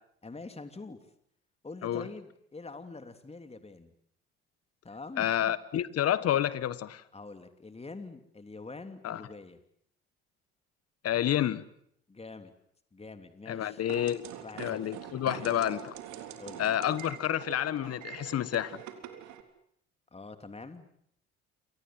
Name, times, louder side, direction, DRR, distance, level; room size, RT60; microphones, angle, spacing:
voice 1, 0.2-1.0 1.6-3.9 4.8-5.5 7.1-9.6 12.1-12.5 12.9-13.8 14.4-14.8 15.2-15.5 16.4-16.7 20.1-20.9, left 3 dB, 20° left, 3.1 m, -45 dB
voice 2, 5.2-7.0 9.0-9.2 11.0-11.6 13.5-14.2 14.6-15.9 16.6-18.8, left 11 dB, 50° left, 1.5 m, -29 dB
sound 1, 13.9-19.4, right 9 dB, 65° right, 3.5 m, -44 dB
29.0 x 24.5 x 7.8 m
hypercardioid pair, 55°, 30 cm